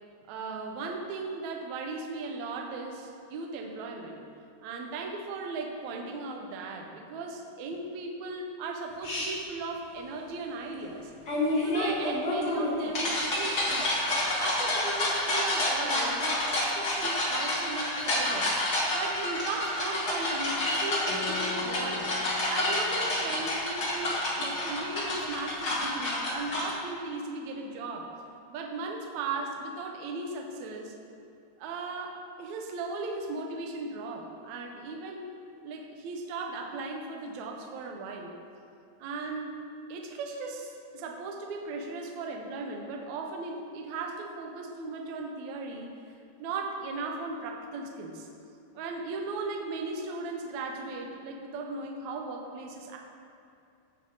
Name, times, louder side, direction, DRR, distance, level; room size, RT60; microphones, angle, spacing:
voice 1, 0.2-4.2 4.6-11.1 11.6-14.0 14.4-18.5 18.9-22.1 22.5-28.1 28.5-30.9 31.6-35.3 35.6-38.3 39.0-39.6 39.9-45.9 46.4-48.3 48.7-53.0, right 3 dB, 85° right, 1 dB, 1.6 m, -37 dB
sound 1, 9.0-9.3 11.3-26.7, left 1 dB, 45° left, 1.3 m, -29 dB
Guitar, 21.1-26.0, left 8 dB, 85° left, 3.5 m, -43 dB
16.0 x 5.7 x 3.9 m, 2.6 s
omnidirectional pair, 4.8 m